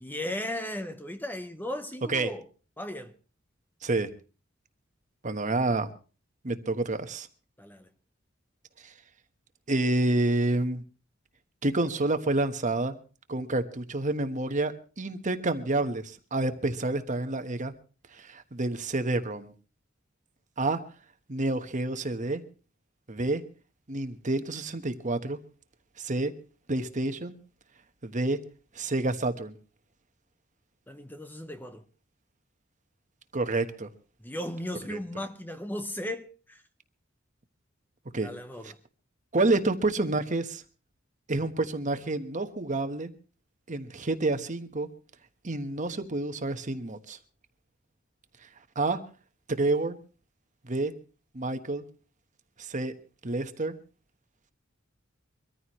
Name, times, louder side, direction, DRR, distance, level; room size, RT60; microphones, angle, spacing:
voice 1, 0.0-2.5 2.8-3.2 7.6-7.9 30.9-31.8 34.2-36.6 38.2-38.8, left 1 dB, 10° left, 0.9 m, -36 dB
voice 2, 5.2-5.9 6.4-7.3 8.8-8.9 9.7-10.8 11.6-12.9 13.3-17.7 18.1-19.5 20.6-20.8 21.3-22.4 23.1-23.4 23.9-25.4 26.0-26.3 26.7-27.3 28.0-28.4 28.7-29.6 33.3-33.9 34.9-35.0 38.1-38.3 39.3-40.6 41.3-43.1 43.7-44.9 45.4-47.2 48.7-49.0 49.5-50.0 50.6-50.9 51.3-51.8 52.6-52.9 53.2-53.7, right 2 dB, 40° right, 1.3 m, -28 dB
24.0 x 14.5 x 3.1 m
head